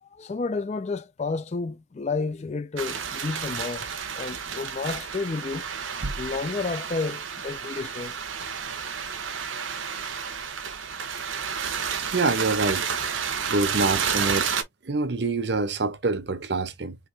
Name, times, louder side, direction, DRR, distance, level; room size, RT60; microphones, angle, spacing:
voice 1, 0.0-5.6 6.2-8.2, left 4 dB, 35° left, 0.3 m, -31 dB
sound 1, 2.8-14.6, right 7 dB, 80° right, 1.0 m, -31 dB
voice 2, 12.1-12.8 13.5-14.5 14.8-17.0, right 3 dB, 55° right, 0.8 m, -26 dB
4.7 x 2.9 x 2.7 m
head